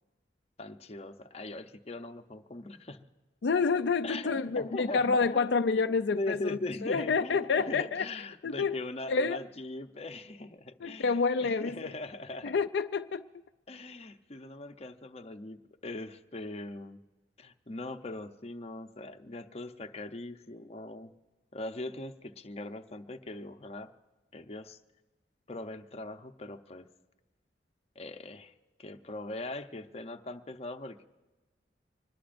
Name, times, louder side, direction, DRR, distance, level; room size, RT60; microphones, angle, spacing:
voice 1, 0.6-3.1 4.0-5.8 6.1-12.6 13.7-17.0 17.4-21.1 21.5-23.9 24.3-24.8 25.5-26.9 28.0-28.5 28.8-31.0, left 2 dB, 35° left, 0.8 m, -40 dB
voice 2, 3.4-8.1 8.4-8.8 9.1-9.4 10.8-11.9 12.4-13.3, left 4 dB, 70° left, 0.4 m, -28 dB
25.0 x 20.5 x 2.6 m
head